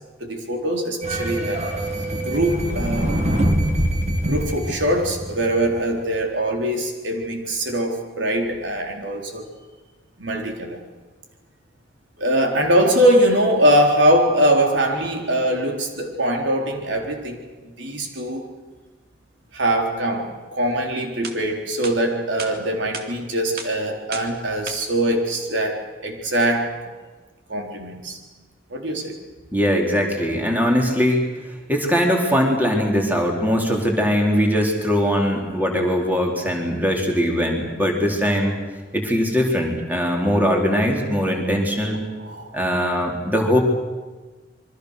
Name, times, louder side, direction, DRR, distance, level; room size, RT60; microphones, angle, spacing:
voice 1, 0.2-1.6 2.1-3.2 4.2-9.4 10.2-10.8 12.2-17.4 17.8-18.5 19.5-26.9 27.5-28.2 28.7-29.1 42.2-42.6, right 1 dB, 80° right, 2 dB, 4.1 m, -22 dB
sound 1, 1.0-5.9, right 1 dB, 40° right, 2.5 m, -24 dB
sound 2, 21.2-21.4 21.8-22.0 22.4-22.5 22.9-23.1 23.6-23.7 24.1-24.3 24.7-24.8, right 5 dB, 55° right, 2.6 m, -32 dB
voice 2, 29.5-31.2 31.7-38.5 38.9-42.0 42.5-43.6, equal, 10° right, 1 dB, 3.9 m, -21 dB
27.5 x 23.5 x 6.7 m, 1.3 s
head